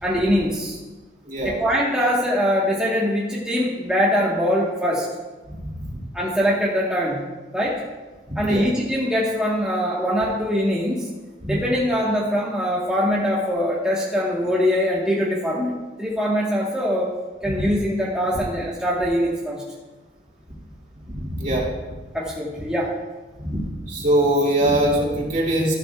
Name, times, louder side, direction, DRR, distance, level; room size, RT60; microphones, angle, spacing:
voice 1, 0.0-0.8 1.4-5.0 6.1-7.2 7.5-7.8 8.3-11.1 11.4-17.1 17.4-19.6 22.1-22.9, equal, 5° right, -6 dB, 1.2 m, -22 dB
voice 2, 1.3-1.6 5.7-6.0 8.4-8.7 11.5-11.6 17.5-17.7 21.1-21.7 23.4-25.7, right 1 dB, 40° right, -2 dB, 2.5 m, -22 dB
13.5 x 11.5 x 2.3 m, 1.2 s
head